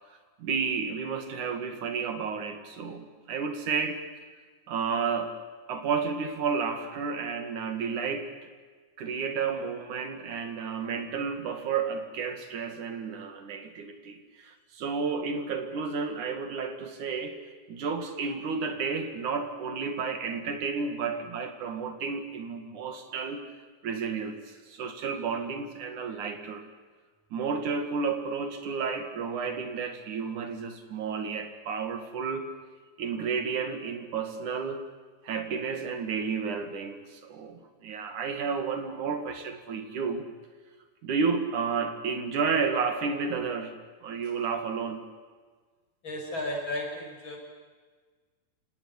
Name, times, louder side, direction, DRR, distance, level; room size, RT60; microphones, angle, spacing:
voice 1, 0.4-4.0 4.7-8.5 9.0-17.4 17.7-23.4 23.8-26.6 27.3-32.5 33.0-34.8 35.2-40.3 41.0-43.8 44.0-45.0, right 5 dB, 75° right, 7 dB, 3.6 m, -31 dB
voice 2, 46.0-47.4, left 1 dB, 35° left, 1 dB, 6.4 m, -34 dB
28.0 x 18.5 x 9.9 m, 1.4 s
omnidirectional pair, 3.6 m